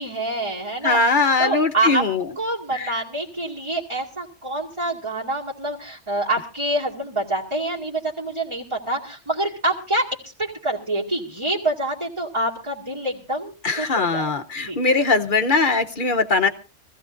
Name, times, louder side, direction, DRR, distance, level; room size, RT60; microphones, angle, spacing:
voice 1, 0.0-1.0 1.4-2.1 2.4-14.3 14.7-14.8, right 1 dB, 25° right, -4 dB, 2.2 m, -26 dB
voice 2, 0.8-2.2 2.7-2.9 13.6-16.5, left 3 dB, 50° left, 7 dB, 1.0 m, -20 dB
24.0 x 15.5 x 2.5 m, 0.33 s
omnidirectional pair, 1.2 m